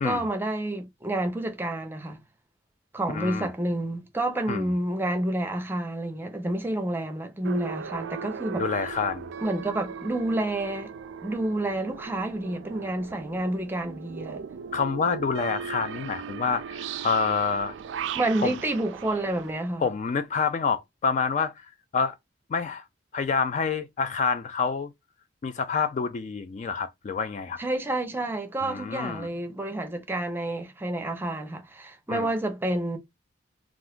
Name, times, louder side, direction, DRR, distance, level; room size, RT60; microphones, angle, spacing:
voice 1, 0.0-2.2 2.9-8.7 9.4-10.9 11.2-14.4 18.1-19.9 27.6-33.0, right 1 dB, 10° right, 0.6 m, -29 dB
voice 2, 3.1-3.5 4.5-4.7 8.6-9.3 14.7-17.7 18.4-18.5 19.8-21.7 21.9-22.2 22.5-22.8 23.1-24.9 25.4-27.6 28.6-29.3 32.1-32.3, left 5 dB, 40° left, 0.3 m, -27 dB
sound 1, 7.4-19.5, right 6 dB, 70° right, 0.3 m, -38 dB
2.5 x 2.4 x 3.5 m
head